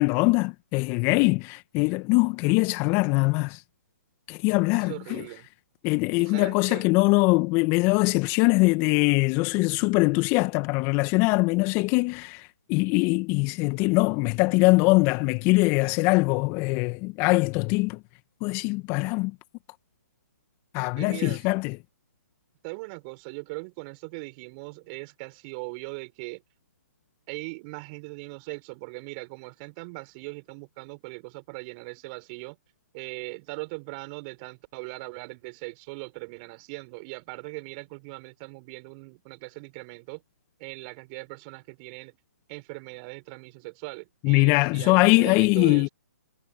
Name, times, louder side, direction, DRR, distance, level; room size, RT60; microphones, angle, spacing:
voice 1, 0.0-3.6 4.3-5.2 5.8-18.0 18.4-19.4 20.7-21.8 44.2-45.9, left 26 dB, 30° left, 1.8 m, -22 dB
voice 2, 4.7-5.5 6.2-6.9 21.0-21.4 22.6-26.4 27.3-32.6 32.9-40.2 40.6-42.2 42.5-45.9, right 31 dB, 30° right, 5.8 m, -40 dB
figure-of-eight pair, 135°, 9 cm